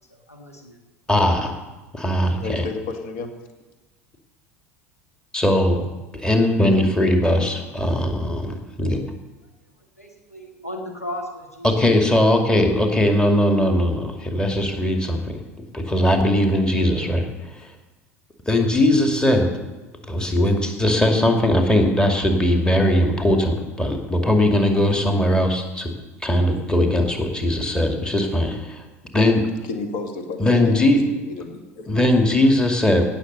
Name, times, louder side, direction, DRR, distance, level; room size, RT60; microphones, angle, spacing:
voice 1, 0.1-0.8 9.8-11.7, left 1 dB, 90° left, 3 dB, 1.6 m, -35 dB
voice 2, 1.1-1.5 1.9-2.6 5.3-5.8 6.1-8.4 8.8-9.0 11.6-17.7 18.5-19.5 20.1-25.9 26.2-28.8 29.1-29.5 30.4-31.0 31.9-33.1, left 1 dB, 10° left, 3 dB, 2.2 m, -19 dB
voice 3, 2.4-3.3 29.7-31.9, left 3 dB, 55° left, 5 dB, 2.2 m, -32 dB
17.5 x 6.9 x 6.7 m, 1.2 s
figure-of-eight pair, 75°, 8 cm